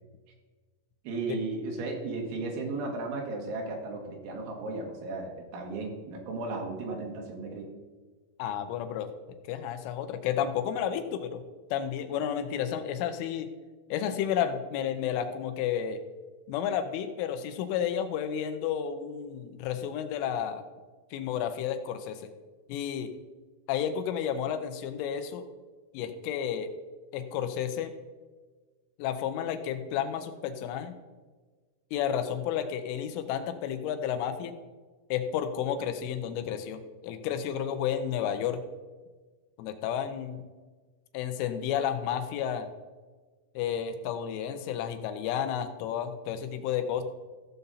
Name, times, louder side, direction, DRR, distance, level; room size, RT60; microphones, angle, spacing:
voice 1, 1.1-7.7, right 3 dB, 75° right, 1 dB, 3.9 m, -35 dB
voice 2, 8.4-9.1 9.4-11.4 11.7-13.5 13.9-16.0 16.5-20.6 21.1-22.3 22.7-23.1 23.7-25.4 25.9-26.7 27.1-27.9 29.0-31.0 31.9-34.6 35.1-38.6 39.6-40.4 41.1-42.7 43.6-47.0, left 9 dB, 85° left, 8 dB, 3.3 m, -31 dB
16.0 x 6.9 x 4.0 m, 1.4 s
omnidirectional pair, 5.5 m